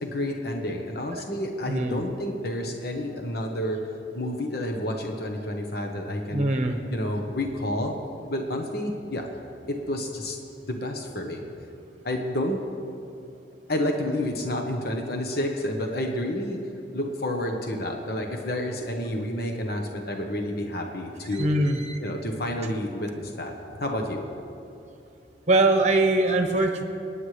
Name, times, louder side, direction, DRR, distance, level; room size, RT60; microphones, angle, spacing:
voice 1, 0.0-3.8 4.1-6.4 6.9-7.9 8.3-9.3 9.9-10.4 10.7-11.5 12.0-12.6 13.7-16.6 16.9-21.5 22.0-24.2, left 1 dB, 60° left, 3 dB, 1.1 m, -29 dB
voice 2, 1.7-2.0 6.3-6.8 21.3-22.0 25.5-26.8, right 2 dB, 40° right, 4 dB, 1.1 m, -22 dB
24.5 x 9.8 x 3.3 m, 2.7 s
head